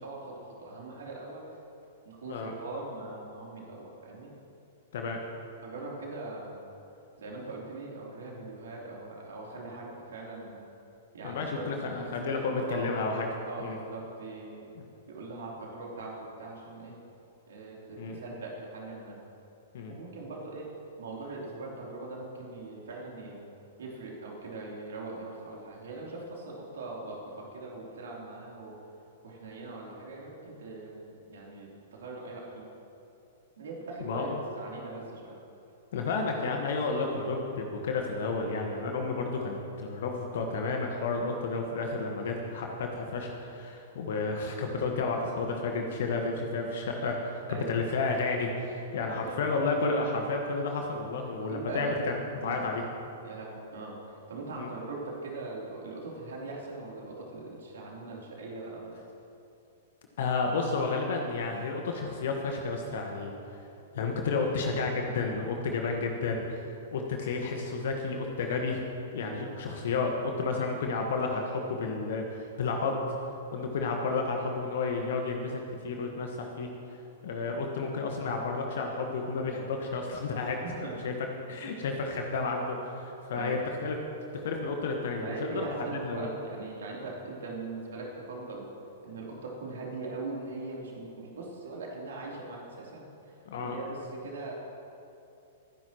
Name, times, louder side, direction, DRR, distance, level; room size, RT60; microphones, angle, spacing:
voice 1, 0.0-1.5 2.0-4.3 5.6-6.6 7.2-10.6 11.1-13.0 13.5-14.7 15.1-17.0 17.5-19.2 19.9-20.7 21.0-23.5 23.8-28.8 29.2-32.6 33.6-35.4 47.5-47.9 49.1-49.4 51.4-51.9 52.4-52.6 53.2-59.0 69.2-69.4 80.6-80.9 83.3-83.6 85.2-88.7 89.0-94.5, right 3 dB, 65° right, -3 dB, 3.3 m, -41 dB
voice 2, 11.2-13.3 13.6-13.8 14.8-14.9 18.0-18.2 19.7-20.0 34.0-34.4 35.9-52.2 52.4-52.8 54.6-54.7 60.2-63.6 63.9-66.7 66.9-68.8 69.1-73.0 73.5-76.7 77.2-80.6 81.0-81.1 81.5-84.0 84.3-85.6 86.1-86.3 93.5-93.8, left 3 dB, 60° left, 2 dB, 1.4 m, -31 dB
26.0 x 10.5 x 3.1 m, 2.7 s
figure-of-eight pair, 105°, 0 cm